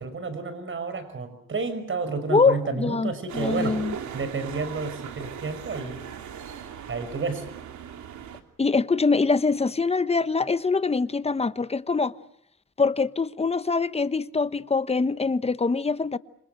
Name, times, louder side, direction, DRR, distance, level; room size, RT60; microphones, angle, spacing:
voice 1, 0.0-3.8 4.1-6.0 6.9-7.5, right 4 dB, 40° right, 5.6 m, -31 dB
voice 2, 2.3-3.9 8.6-12.1 12.8-16.2, left 4 dB, 20° left, 1.0 m, -24 dB
sound 1, 3.3-8.4, right 8 dB, 70° right, 3.0 m, -38 dB
27.5 x 26.5 x 6.6 m
cardioid pair, 90°, 30 cm